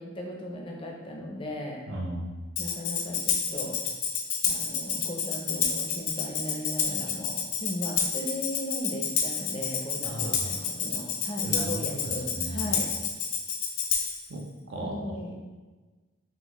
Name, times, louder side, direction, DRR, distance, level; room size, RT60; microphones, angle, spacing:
voice 1, 0.0-1.8 2.6-3.8 4.4-12.9 14.8-15.6, left 1 dB, 25° left, 0 dB, 0.5 m, -37 dB
voice 2, 1.9-2.4 10.0-10.6 11.4-12.7 14.3-15.2, equal, 60° right, 1 dB, 0.6 m, -36 dB
Tambourine, 2.6-14.3, left 6 dB, 90° left, 0.6 m, -29 dB
4.0 x 3.4 x 3.0 m, 1.3 s
head